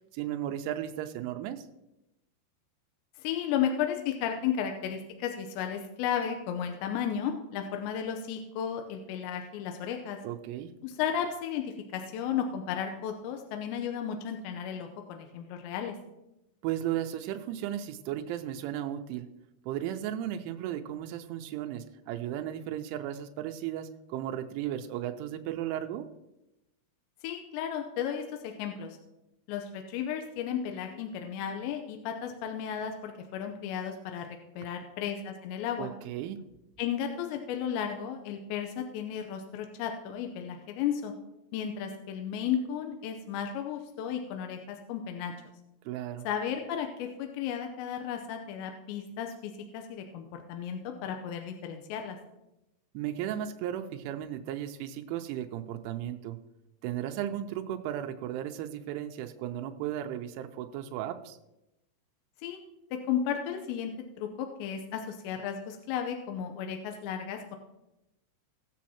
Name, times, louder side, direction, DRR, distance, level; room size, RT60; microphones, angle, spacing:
voice 1, 0.1-1.6 10.2-10.7 16.6-19.3 19.7-26.1 35.8-36.4 45.9-46.3 52.9-56.4 56.8-61.4, right 11 dB, 85° right, 6 dB, 3.0 m, -35 dB
voice 2, 3.2-10.2 10.8-15.9 27.2-29.0 29.5-34.3 34.5-35.9 36.8-41.1 41.5-45.3 46.2-52.2 62.4-62.6 62.9-63.9 64.2-67.6, left 8 dB, 80° left, 4 dB, 2.7 m, -34 dB
19.0 x 7.4 x 2.8 m, 0.92 s
omnidirectional pair, 5.7 m